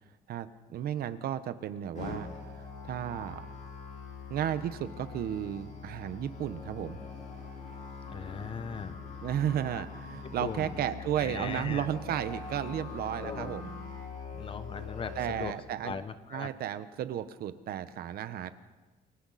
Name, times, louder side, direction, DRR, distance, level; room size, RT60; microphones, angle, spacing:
voice 1, 0.3-2.3 2.8-3.4 4.3-7.0 9.2-13.7 15.2-16.0 16.3-18.5, right 10 dB, 65° right, 12 dB, 1.2 m, -33 dB
Musical instrument, 2.0-15.5, left 5 dB, 50° left, 7.0 m, -43 dB
voice 2, 8.1-9.0 9.7-9.8 10.2-10.8 11.2-11.9 13.2-13.5 14.3-15.6 15.8-16.5, left 6 dB, 35° left, 11 dB, 1.2 m, -39 dB
28.5 x 22.5 x 4.3 m, 1.2 s
cardioid pair, 145°, 17 cm